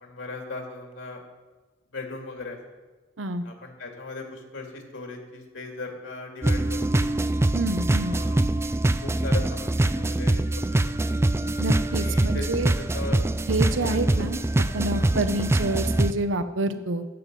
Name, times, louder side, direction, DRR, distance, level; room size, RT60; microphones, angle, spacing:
voice 1, 0.0-1.2 1.9-2.6 3.4-7.2 8.1-8.4 9.0-10.8 11.1-11.2 12.0-13.2 13.7-14.3 14.9-15.1, left 3 dB, 80° left, 2 dB, 2.4 m, -38 dB
sound 1, 6.4-16.1, right 2 dB, 15° right, 0.3 m, -24 dB
voice 2, 7.5-8.2 11.6-12.7 13.5-14.4 14.7-17.1, right 2 dB, 75° right, 10 dB, 0.9 m, -27 dB
13.5 x 9.1 x 5.3 m, 1.3 s
head